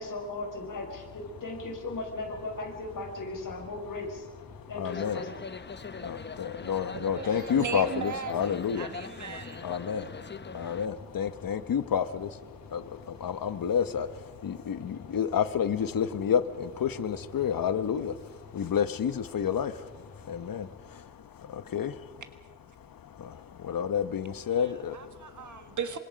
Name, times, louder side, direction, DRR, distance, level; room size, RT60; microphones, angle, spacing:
voice 1, 0.0-4.3 4.7-5.4, left 2 dB, 70° left, 1 dB, 5.4 m, -37 dB
sound 1, 0.9-20.7, left 3 dB, 50° left, 4.7 m, -52 dB
voice 2, 4.5-5.2 5.7-8.9 9.6-22.2 22.8-25.8, left 8 dB, 90° left, 12 dB, 1.1 m, -31 dB
sound 2, 4.8-10.9, left 4 dB, 30° left, 0.9 m, -41 dB
voice 3, 6.9-9.6 24.6-26.0, right 6 dB, 60° right, 7 dB, 1.6 m, -37 dB
27.5 x 25.0 x 5.2 m, 1.4 s
wide cardioid pair, 100°, 33 cm